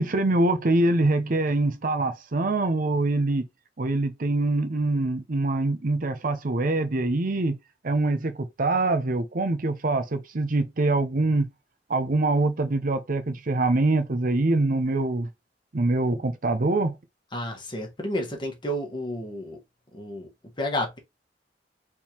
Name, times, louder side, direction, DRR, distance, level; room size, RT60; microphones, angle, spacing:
voice 1, 0.0-3.4 3.8-7.6 7.8-11.5 11.9-15.3 15.7-17.0, right 2 dB, 50° right, 0.7 m, -24 dB
voice 2, 17.3-19.6 19.9-20.3 20.6-21.0, equal, 25° left, 1.4 m, -31 dB
4.5 x 3.6 x 2.9 m
head